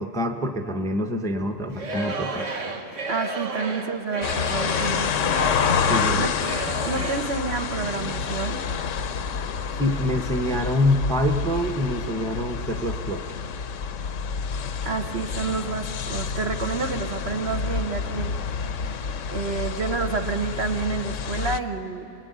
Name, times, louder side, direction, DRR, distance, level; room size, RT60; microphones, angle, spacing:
voice 1, 0.0-2.5 5.8-6.2 9.8-13.2, left 1 dB, 5° left, 6 dB, 0.9 m, -25 dB
Singing / Crowd, 1.7-7.4, right 3 dB, 90° right, 1.8 m, -32 dB
voice 2, 3.1-5.3 6.1-6.3 6.8-8.6 14.8-18.3 19.3-22.1, right 4 dB, 60° right, 5 dB, 1.3 m, -29 dB
sound 1, 4.2-21.6, left 6 dB, 90° left, 1.2 m, -28 dB
29.0 x 21.0 x 9.4 m, 3.0 s
omnidirectional pair, 1.2 m